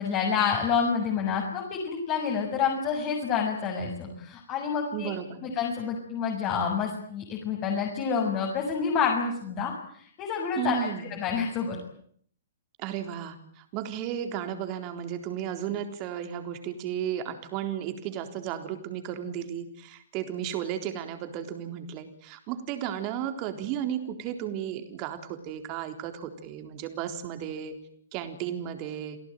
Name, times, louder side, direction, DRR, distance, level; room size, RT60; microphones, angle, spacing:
voice 1, 0.0-5.1 5.4-11.8, left 6 dB, 35° left, 1 dB, 7.1 m, -28 dB
voice 2, 4.9-5.4 10.5-11.1 12.8-27.8 28.1-29.2, right 10 dB, 40° right, 7 dB, 3.9 m, -34 dB
30.0 x 18.0 x 9.2 m, 0.64 s
hypercardioid pair, 115°, 0 cm